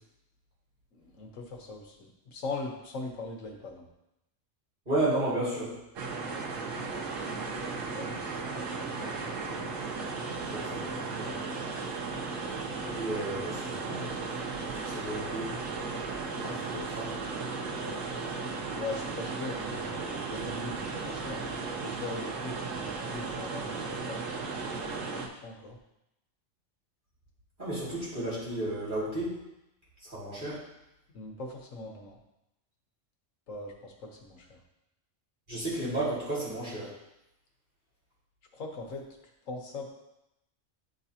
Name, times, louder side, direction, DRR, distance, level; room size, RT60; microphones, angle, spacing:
voice 1, 0.9-3.9 7.2-8.9 9.2-9.4 16.4-16.9 17.7-18.0 18.6-24.4 24.7-25.8 31.1-32.2 33.5-34.6 38.5-39.0 39.4-39.9, left 3 dB, 85° left, 0 dB, 1.4 m, -41 dB
voice 2, 4.9-5.7 9.0-9.1 10.5-11.3 12.9-14.1 14.7-15.5 16.3-16.5 17.0-17.1 27.6-29.4 30.0-30.6 35.5-36.9, right 1 dB, 40° right, -9 dB, 2.4 m, -33 dB
sound 1, 6.0-25.3, right 4 dB, 90° right, 1.2 m, -35 dB
10.0 x 3.9 x 2.8 m, 0.88 s
omnidirectional pair, 1.3 m